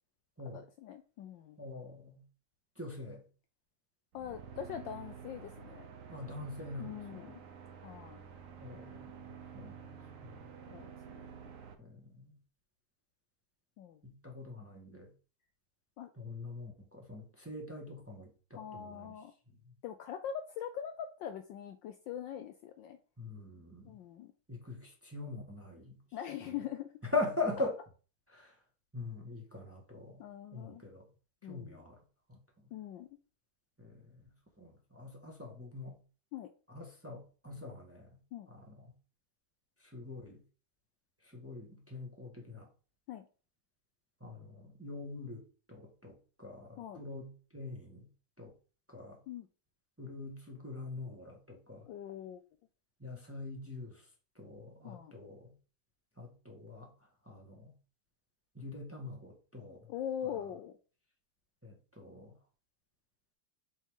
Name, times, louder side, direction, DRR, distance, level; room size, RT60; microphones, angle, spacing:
voice 1, 0.5-1.6 4.1-5.9 6.8-7.3 7.8-8.2 10.7-11.5 13.8-14.0 16.0-16.1 18.5-19.3 19.8-23.0 23.8-24.3 26.1-26.9 30.2-30.8 31.4-31.8 32.7-33.2 36.3-36.5 38.3-38.5 43.1-43.3 46.8-47.0 49.3-49.5 51.9-52.4 54.8-55.1 59.9-60.7, left 9 dB, 75° left, 8 dB, 1.1 m, -43 dB
voice 2, 1.6-2.2 2.8-3.2 6.1-7.3 8.6-10.5 11.8-12.3 14.0-15.1 16.1-19.1 23.2-23.9 24.5-26.0 27.0-27.8 28.3-28.5 28.9-30.2 30.5-31.1 31.5-32.0 32.3-32.4 33.8-34.2 34.6-36.0 36.7-38.2 38.5-38.9 39.8-40.4 41.2-42.7 44.2-47.3 47.5-48.1 48.4-48.5 48.9-49.2 50.0-51.9 53.0-54.0 54.3-55.5 56.2-56.9 57.2-57.7 58.5-59.9 60.2-60.4 61.6-62.3, left 3 dB, 5° right, 0 dB, 1.3 m, -43 dB
sound 1, 4.1-11.7, right 7 dB, 55° right, 0.9 m, -50 dB
7.1 x 4.5 x 3.7 m, 0.37 s
omnidirectional pair, 2.4 m